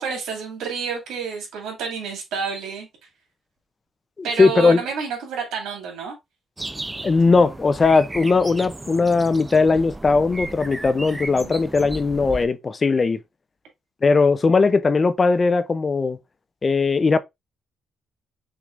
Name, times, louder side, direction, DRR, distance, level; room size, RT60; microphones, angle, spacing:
voice 1, 0.0-2.9 4.2-6.2 11.1-11.5, right 6 dB, 85° right, 2.2 m, -29 dB
voice 2, 4.2-4.8 7.0-13.2 14.0-16.2 16.6-17.2, left 4 dB, 35° left, 0.5 m, -19 dB
sound 1, 6.6-12.5, right 2 dB, 15° right, 0.5 m, -35 dB
6.0 x 3.3 x 2.5 m
cardioid pair, 90°, 0 cm